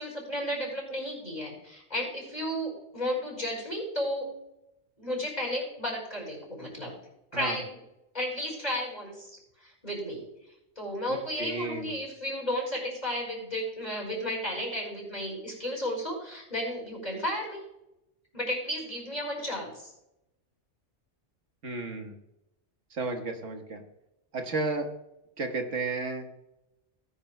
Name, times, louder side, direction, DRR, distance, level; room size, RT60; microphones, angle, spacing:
voice 1, 0.0-4.3 5.0-6.9 7.3-7.8 8.1-9.3 9.6-10.2 10.8-17.6 18.3-19.9, equal, 35° left, -1 dB, 4.9 m, -33 dB
voice 2, 11.1-11.9 21.6-22.1 22.9-23.8 24.3-24.9 25.4-26.3, right 3 dB, 85° right, 4 dB, 1.7 m, -33 dB
18.0 x 11.0 x 2.2 m, 0.86 s
omnidirectional pair, 1.2 m